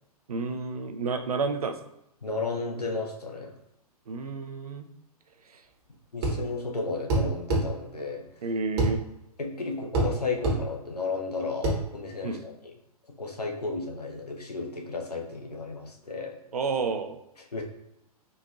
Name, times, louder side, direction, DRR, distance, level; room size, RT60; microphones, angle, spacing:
voice 1, 0.3-1.8 4.1-4.9 8.4-9.0 12.2-12.4 16.5-17.2, right 4 dB, 70° right, 8 dB, 0.4 m, -30 dB
voice 2, 2.2-3.5 6.1-8.3 9.4-12.5 13.2-16.4 17.4-17.6, left 3 dB, 85° left, 1 dB, 0.7 m, -33 dB
sound 1, 6.2-6.4 7.1-7.7 8.8-9.0 9.9-10.1 10.4-10.6 11.6-11.8, right 2 dB, 40° right, 0.9 m, -24 dB
3.9 x 2.5 x 2.4 m, 0.82 s
figure-of-eight pair, 115°, 20 cm